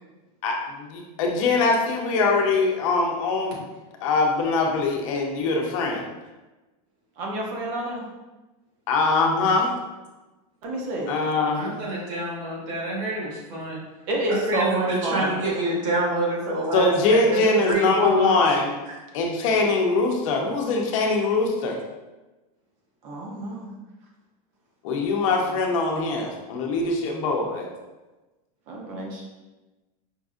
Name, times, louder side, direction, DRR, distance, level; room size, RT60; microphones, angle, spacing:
voice 1, 0.4-3.6 4.0-6.1 8.9-9.7 11.1-11.7 16.7-18.7 19.1-21.8 24.8-27.7, left 3 dB, 60° left, 1 dB, 0.7 m, -22 dB
voice 2, 7.2-8.0 10.6-11.1 14.1-15.4 23.0-23.7 25.5-25.6 28.7-29.2, right 2 dB, 35° right, -1 dB, 0.7 m, -28 dB
voice 3, 11.6-13.8 14.3-18.4, right 1 dB, 60° right, -4 dB, 1.5 m, -27 dB
5.3 x 2.6 x 2.4 m, 1.1 s
supercardioid pair, 180°, 19 cm